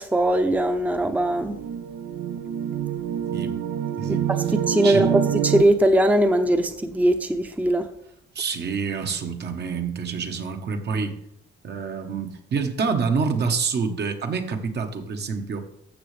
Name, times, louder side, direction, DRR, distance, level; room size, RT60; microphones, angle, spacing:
voice 1, 0.0-1.6 4.5-7.8, right 1 dB, 10° right, 7 dB, 0.7 m, -20 dB
sound 1, 0.9-5.6, right 9 dB, 75° right, 0.6 m, -27 dB
voice 2, 3.3-3.6 4.0-4.3 4.8-5.1 8.3-11.2 11.6-15.6, right 5 dB, 55° right, 5 dB, 1.2 m, -27 dB
14.0 x 6.5 x 3.3 m, 0.79 s
cardioid pair, 90°, 20 cm